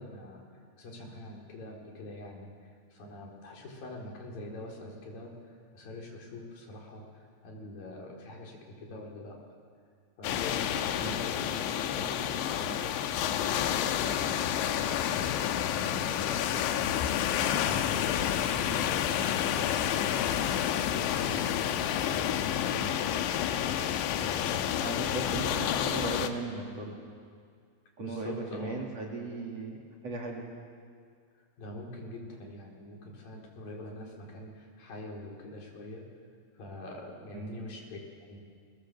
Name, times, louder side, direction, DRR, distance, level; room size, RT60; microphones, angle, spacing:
voice 1, 0.0-9.4 10.2-13.7 14.2-25.4 28.0-28.8 31.6-36.2 36.5-38.4, left 2 dB, 50° left, -1 dB, 5.8 m, -45 dB
sound 1, 10.2-26.3, left 10 dB, 85° left, 3.4 m, -29 dB
voice 2, 24.8-26.9 28.0-29.8 30.0-30.4 37.3-37.5, right 3 dB, 40° right, 0 dB, 3.4 m, -37 dB
29.5 x 21.5 x 7.8 m, 2.1 s
omnidirectional pair, 5.2 m